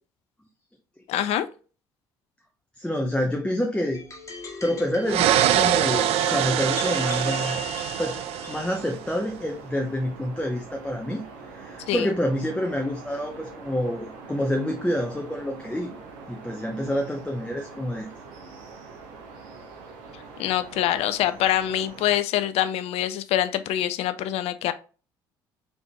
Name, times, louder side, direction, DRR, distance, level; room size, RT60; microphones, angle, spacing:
voice 1, 1.1-1.5 11.9-12.1 20.4-24.7, left 12 dB, 60° left, 12 dB, 0.4 m, -25 dB
voice 2, 2.8-4.0 4.6-7.7 8.0-11.2 11.5-16.0 16.3-18.1, equal, 10° left, 2 dB, 0.8 m, -28 dB
sound 1, 3.9-8.7, left 4 dB, 25° left, 1.6 m, -38 dB
sound 2, 5.1-9.0, right 11 dB, 60° right, 0.4 m, -24 dB
sound 3, 6.7-22.2, right 4 dB, 75° right, 0.9 m, -44 dB
4.0 x 3.4 x 3.0 m, 0.37 s
hypercardioid pair, 50°, 12 cm